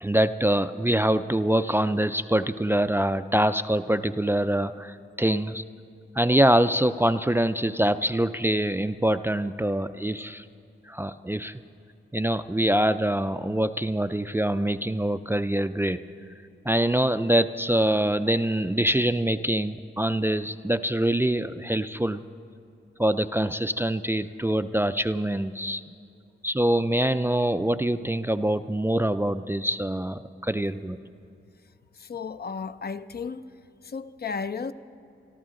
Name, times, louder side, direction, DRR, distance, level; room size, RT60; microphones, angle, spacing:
voice 1, 0.0-5.6 6.2-10.5 10.9-11.6 12.1-16.0 16.6-22.2 23.0-25.8 26.4-31.0, right 1 dB, 10° right, 0.3 m, -24 dB
voice 2, 32.0-33.6 33.8-34.7, left 5 dB, 50° left, 0.5 m, -34 dB
24.5 x 13.0 x 3.8 m
cardioid pair, 70°, 21 cm